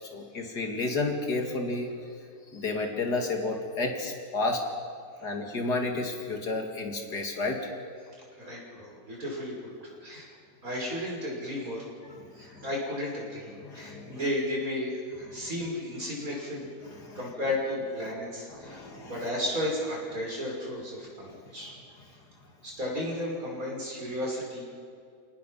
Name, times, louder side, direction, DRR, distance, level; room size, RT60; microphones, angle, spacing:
voice 1, 0.1-1.9 2.5-4.6 5.2-7.7 12.4-12.6 13.6-14.2 15.3-15.5 17.0-17.2 18.0-18.1 18.5-19.3, left 3 dB, 90° left, 2 dB, 3.0 m, -31 dB
voice 2, 8.4-9.6 10.0-10.3 10.6-11.8 12.3-16.7 17.1-21.7 22.6-24.6, left 1 dB, 60° right, -3 dB, 6.5 m, -33 dB
29.5 x 18.0 x 5.8 m, 2.2 s
omnidirectional pair, 1.7 m